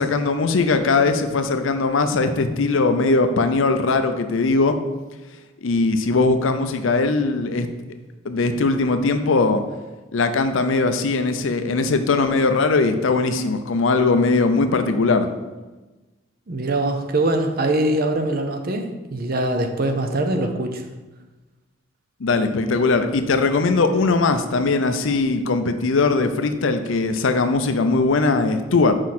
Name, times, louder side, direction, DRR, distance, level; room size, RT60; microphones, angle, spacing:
voice 1, 0.0-4.8 5.6-7.7 8.2-9.6 10.1-15.3 22.2-28.9, left 3 dB, 70° left, 8 dB, 0.5 m, -20 dB
voice 2, 16.5-18.8 19.1-20.8, right 2 dB, 45° right, 5 dB, 0.6 m, -22 dB
6.2 x 4.8 x 4.2 m, 1.2 s
head